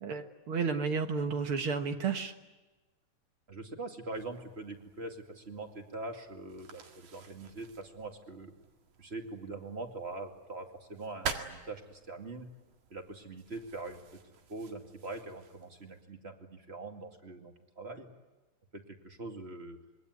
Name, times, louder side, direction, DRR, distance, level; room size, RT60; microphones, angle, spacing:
voice 1, 0.0-2.3, right 5 dB, 55° right, 6 dB, 1.9 m, -32 dB
voice 2, 3.5-8.5 9.0-12.5 12.9-14.0 14.5-18.1 18.7-19.8, right 2 dB, 25° right, 4 dB, 2.2 m, -43 dB
sound 1, 4.1-16.0, right 6 dB, 75° right, 3.3 m, -47 dB
26.0 x 22.5 x 9.7 m, 1.2 s
omnidirectional pair, 3.4 m